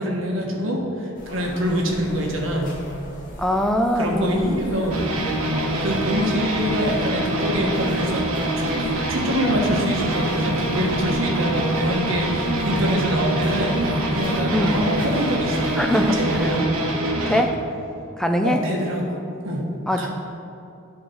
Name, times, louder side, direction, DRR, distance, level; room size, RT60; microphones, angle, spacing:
voice 1, 0.0-2.7 4.0-5.0 5.8-8.3 8.5-13.8 14.1-16.7 18.4-19.2 19.4-19.7 20.0-20.1, equal, 65° right, 0 dB, 1.3 m, -25 dB
sound 1, 1.1-16.6, equal, 40° left, 1.4 m, -39 dB
voice 2, 3.4-4.6 14.5-14.8 15.8-16.5 17.3-17.7 18.2-18.7 19.9-20.1, equal, ahead, 5 dB, 0.4 m, -22 dB
sound 2, 4.9-17.4, right 1 dB, 85° right, 1.1 m, -25 dB
9.4 x 3.8 x 6.3 m, 2.7 s
head